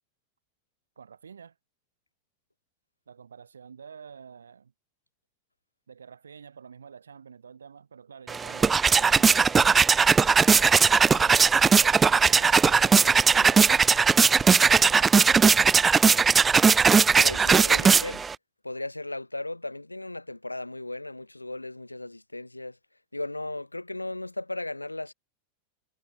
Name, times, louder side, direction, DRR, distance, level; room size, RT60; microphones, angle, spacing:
voice 1, 1.0-1.6 3.1-4.7 5.9-9.8 10.9-11.4 11.8-13.9 14.6-15.7, right 6 dB, 70° right, 5.9 m, -47 dB
sound 1, 8.3-18.3, right 5 dB, 15° right, 0.4 m, -19 dB
voice 2, 17.2-18.3 18.6-22.8 23.1-25.1, left 2 dB, 85° left, 3.1 m, -36 dB
figure-of-eight pair, 90°, 0 cm